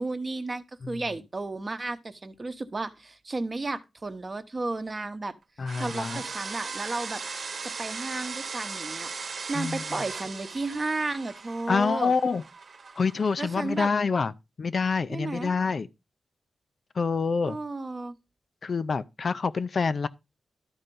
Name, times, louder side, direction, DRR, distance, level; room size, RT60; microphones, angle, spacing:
voice 1, 0.0-5.3 5.8-7.2 7.6-9.1 9.5-12.1 13.4-13.9 15.1-15.5 17.5-18.2, right 3 dB, 30° right, 0.9 m, -33 dB
voice 2, 5.6-6.2 9.5-9.8 11.7-12.4 13.0-14.3 14.6-15.9 17.0-17.6 18.6-20.1, left 5 dB, 50° left, 0.5 m, -26 dB
sound 1, 5.7-13.8, right 4 dB, 55° right, 1.1 m, -38 dB
12.0 x 4.4 x 5.3 m
wide cardioid pair, 115°, 0 cm